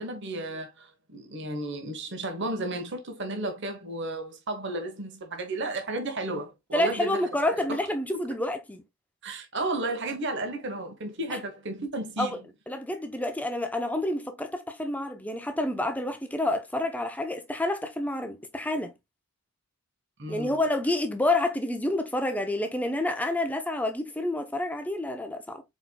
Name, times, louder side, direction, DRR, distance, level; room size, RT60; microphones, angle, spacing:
voice 1, 0.0-7.8 8.1-8.2 9.2-12.4 20.2-20.6, right 2 dB, 50° right, 1.1 m, -33 dB
voice 2, 6.7-8.8 11.3-11.4 12.2-12.4 12.7-18.9 20.3-25.6, left 1 dB, 5° left, 0.6 m, -28 dB
4.6 x 4.3 x 2.2 m
head